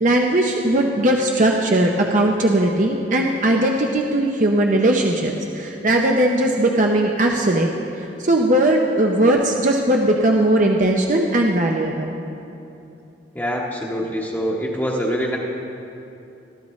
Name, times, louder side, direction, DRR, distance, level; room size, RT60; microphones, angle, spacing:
voice 1, 0.0-7.7 8.0-12.1, right 1 dB, 45° right, 1 dB, 0.8 m, -18 dB
voice 2, 13.3-15.4, equal, 10° left, -4 dB, 1.1 m, -24 dB
21.5 x 13.0 x 3.2 m, 2.8 s
head